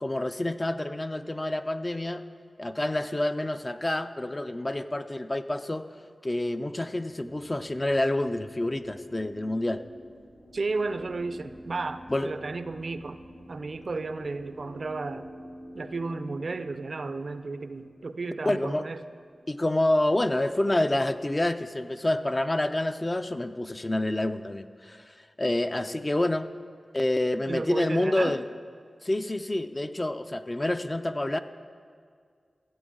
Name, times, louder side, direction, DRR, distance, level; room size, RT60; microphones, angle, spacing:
voice 1, 0.0-2.2 2.6-5.9 6.2-9.8 12.1-12.3 18.5-18.9 19.5-26.5 26.9-28.4 29.0-31.4, left 1 dB, 30° left, 10 dB, 0.4 m, -28 dB
sound 1, 7.1-21.6, equal, 50° left, 3.0 m, -49 dB
voice 2, 10.5-13.2 13.5-15.3 15.7-19.0 27.5-28.4, right 3 dB, 60° right, 12 dB, 0.4 m, -33 dB
15.0 x 8.0 x 3.7 m, 2.1 s
wide cardioid pair, 60°, 0 cm